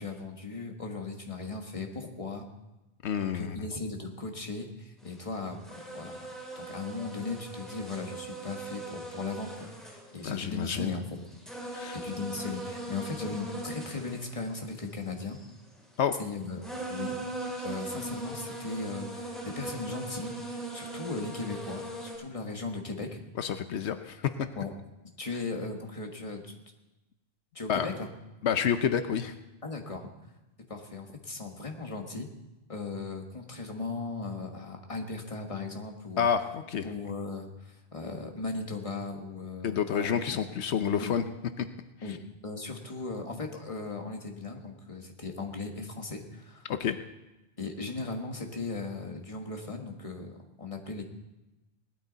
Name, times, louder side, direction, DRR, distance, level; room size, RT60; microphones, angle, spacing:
voice 1, 0.0-2.5 3.2-11.0 11.9-15.4 16.2-16.6 16.9-17.2 17.6-23.2 24.5-24.7 25.2-26.6 27.5-28.1 29.6-30.1 30.7-32.3 32.7-36.3 36.8-40.2 40.9-41.1 42.0-46.7 47.6-51.0, left 3 dB, 30° left, 2 dB, 1.6 m, -37 dB
voice 2, 3.0-3.7 10.2-10.9 11.7-12.0 16.0-16.1 23.4-24.3 27.7-27.9 28.4-29.3 36.2-36.9 39.6-41.2 41.6-41.7 42.1-42.2 46.7-47.0, left 8 dB, 85° left, 9 dB, 1.0 m, -29 dB
sound 1, 5.1-5.3 5.6-10.7 11.1-15.5 16.3-16.4 16.6-22.1, right 2 dB, ahead, 6.0 m, -40 dB
18.5 x 13.0 x 4.0 m, 1.0 s
omnidirectional pair, 1.1 m